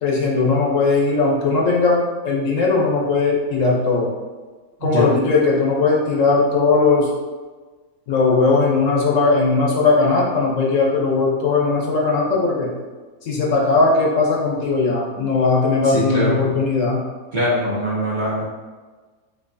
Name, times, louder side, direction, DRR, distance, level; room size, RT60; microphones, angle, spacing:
voice 1, 0.0-4.1 4.8-7.1 8.1-12.7 13.2-17.0, left 3 dB, 65° left, -2 dB, 1.1 m, -18 dB
voice 2, 15.8-16.4 17.3-18.4, equal, 35° right, -7 dB, 1.1 m, -22 dB
6.0 x 2.8 x 2.6 m, 1.3 s
omnidirectional pair, 1.5 m